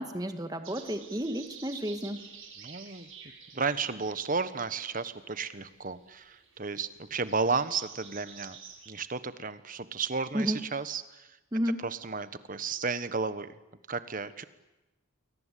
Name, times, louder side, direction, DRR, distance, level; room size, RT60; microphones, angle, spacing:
voice 1, 0.0-2.2 10.3-10.6 11.5-11.8, equal, 20° right, 7 dB, 1.9 m, -31 dB
sound 1, 0.6-8.9, right 6 dB, 75° right, 7.8 m, -51 dB
voice 2, 2.6-3.1 3.5-8.6 8.9-11.4 11.8-13.5 13.9-14.4, right 4 dB, 40° right, 12 dB, 1.3 m, -33 dB
29.5 x 22.5 x 8.5 m, 1.0 s
head